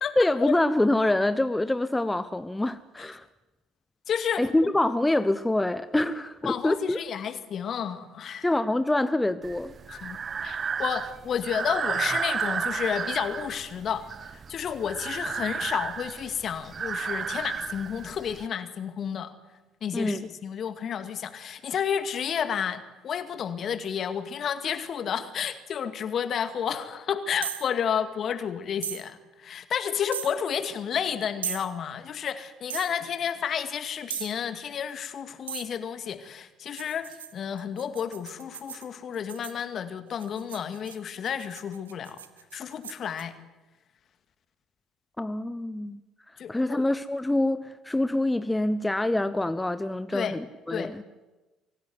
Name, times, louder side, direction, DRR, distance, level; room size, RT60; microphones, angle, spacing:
voice 1, 0.2-3.3 4.4-7.0 8.4-9.7 19.9-20.2 45.2-46.0 46.5-51.0, left 1 dB, 10° left, 13 dB, 0.9 m, -25 dB
voice 2, 4.1-4.7 6.4-8.5 9.9-19.3 19.8-42.2 42.5-43.3 46.4-46.8 50.1-50.4 50.7-50.9, left 8 dB, 50° left, 10 dB, 2.2 m, -31 dB
Breathing, 9.4-18.5, right 6 dB, 40° right, 0.8 m, -32 dB
sound 1, 27.4-27.7 28.8-29.0 30.1-30.3 31.4-31.7 32.7-32.9 34.1-34.4 35.5-35.7 36.8-39.6 40.2-43.2, right 9 dB, 85° right, 1.0 m, -37 dB
24.5 x 16.5 x 9.6 m, 1.1 s
hypercardioid pair, 55°, 0 cm